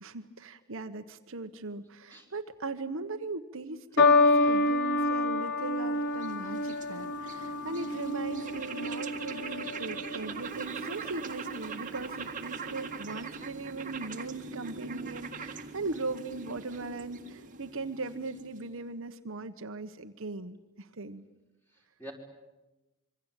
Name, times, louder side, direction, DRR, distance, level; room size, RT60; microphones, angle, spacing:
voice 1, 0.0-21.2, right 3 dB, 65° right, 7 dB, 1.2 m, -39 dB
sound 1, 4.0-10.5 11.3-11.7, left 2 dB, 55° left, 1.3 m, -28 dB
sound 2, 5.4-18.8, right 5 dB, 35° right, 1.7 m, -42 dB
voice 2, 21.7-22.1, equal, 10° left, 1 dB, 4.9 m, -47 dB
26.0 x 24.0 x 9.1 m, 1.1 s
head